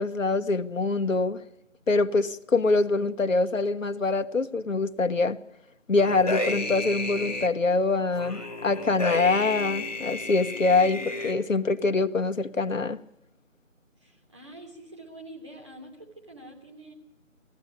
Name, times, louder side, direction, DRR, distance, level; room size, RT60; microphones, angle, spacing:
voice 1, 0.0-1.4 1.9-5.4 5.9-13.0, left 3 dB, 80° left, 7 dB, 1.3 m, -24 dB
sound 1, 6.0-7.5 8.2-11.3, left 2 dB, 30° left, 1.6 m, -32 dB
voice 2, 10.8-11.3 14.0-16.9, right 1 dB, 20° right, -3 dB, 3.0 m, -46 dB
19.0 x 14.5 x 9.8 m, 0.82 s
figure-of-eight pair, 180°, 39 cm